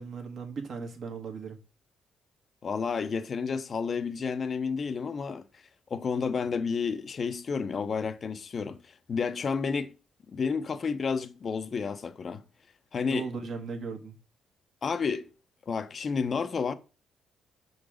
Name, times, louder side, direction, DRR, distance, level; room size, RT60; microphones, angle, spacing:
voice 1, 0.0-1.6 13.1-14.1, right 5 dB, 60° right, 1.4 m, -37 dB
voice 2, 2.6-5.4 5.9-8.8 9.1-9.9 10.3-12.4 12.9-13.3 14.8-15.3 15.7-16.7, left 5 dB, 45° left, 0.6 m, -30 dB
6.0 x 3.9 x 4.9 m
cardioid pair, 90°, 0 cm